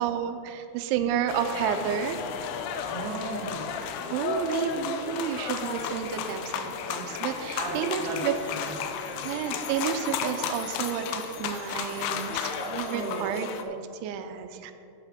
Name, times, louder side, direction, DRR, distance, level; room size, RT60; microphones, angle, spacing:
voice 1, 0.0-2.8 4.1-8.3 9.2-14.7, right 9 dB, 90° right, 8 dB, 3.0 m, -31 dB
sound 1, 1.3-13.6, left 7 dB, 90° left, 2.2 m, -33 dB
voice 2, 2.9-4.0 7.5-8.8 9.0-9.2 12.5-13.4, right 2 dB, 70° right, -4 dB, 1.0 m, -35 dB
11.5 x 9.1 x 3.6 m, 2.8 s
omnidirectional pair, 5.3 m